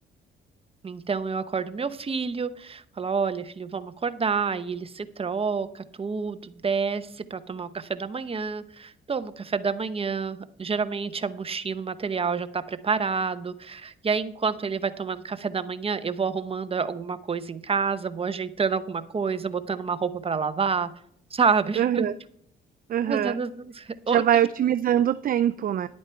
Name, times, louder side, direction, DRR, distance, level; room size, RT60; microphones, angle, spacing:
voice 1, 0.8-20.9 21.3-22.1 23.1-24.2, right 5 dB, 30° right, 11 dB, 0.9 m, -28 dB
voice 2, 21.8-22.1 22.9-23.4 24.1-25.9, right 10 dB, 45° right, 13 dB, 0.4 m, -23 dB
11.0 x 8.7 x 4.5 m, 0.68 s
cardioid pair, 90°, 20 cm